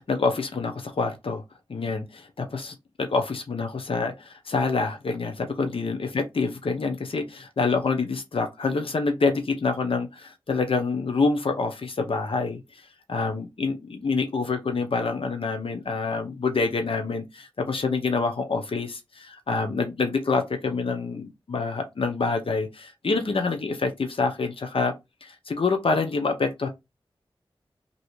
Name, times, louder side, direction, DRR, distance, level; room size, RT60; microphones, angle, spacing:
voice 1, 0.0-1.4 1.7-12.8 13.1-24.9 25.2-26.7, left 4 dB, 75° left, 0.7 m, -27 dB
3.1 x 2.7 x 3.1 m
wide cardioid pair, 50°, 9 cm